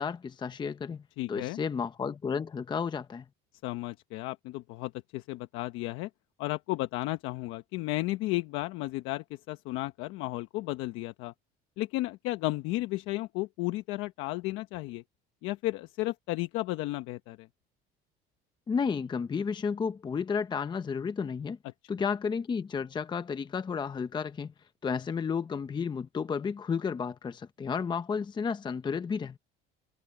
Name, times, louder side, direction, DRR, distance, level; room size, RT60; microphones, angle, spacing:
voice 1, 0.0-1.0 1.3-3.2 18.7-21.6 21.9-24.5 24.8-29.4, left 6 dB, 20° left, 0.7 m, -32 dB
voice 2, 1.2-1.6 3.6-6.1 6.4-11.3 11.8-15.0 15.4-17.5, left 18 dB, 75° left, 1.1 m, -33 dB
cardioid pair, 130°, 21 cm